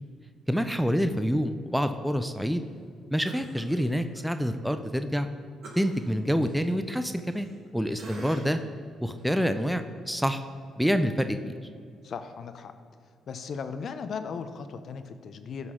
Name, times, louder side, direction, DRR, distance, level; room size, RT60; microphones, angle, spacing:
voice 1, 0.5-2.6 3.1-5.3 5.8-7.5 7.7-8.6 9.0-10.4 10.8-11.5, equal, ahead, 9 dB, 0.4 m, -27 dB
Cough, 3.2-4.3 4.7-4.8 5.6-7.7 8.0-8.7 9.2-9.3, right 2 dB, 65° right, 1.3 m, -47 dB
voice 2, 12.0-12.7 13.3-15.7, left 6 dB, 60° left, 9 dB, 0.5 m, -37 dB
12.0 x 4.1 x 3.7 m, 2.2 s
hypercardioid pair, 55°, 0 cm